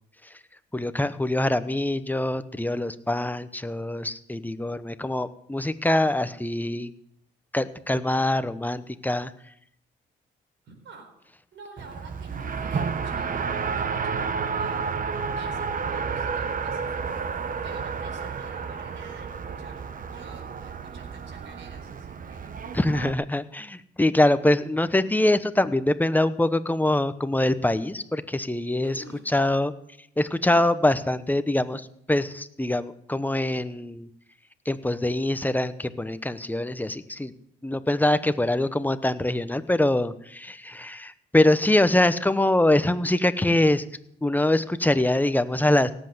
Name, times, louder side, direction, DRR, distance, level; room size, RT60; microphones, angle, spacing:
voice 1, 0.7-6.9 7.5-9.3 22.7-29.7 30.2-34.1 34.7-37.3 37.6-43.8 44.2-46.0, left 1 dB, 10° left, 12 dB, 0.9 m, -24 dB
voice 2, 10.6-11.1 11.5-14.9 15.4-17.2 17.6-22.6 28.8-29.3, right 3 dB, 70° right, 4 dB, 4.4 m, -49 dB
Race car auto racing, 11.8-23.1, right 5 dB, 45° right, 1.1 m, -31 dB
17.5 x 8.0 x 7.8 m, 0.73 s
cardioid pair, 90°, 20 cm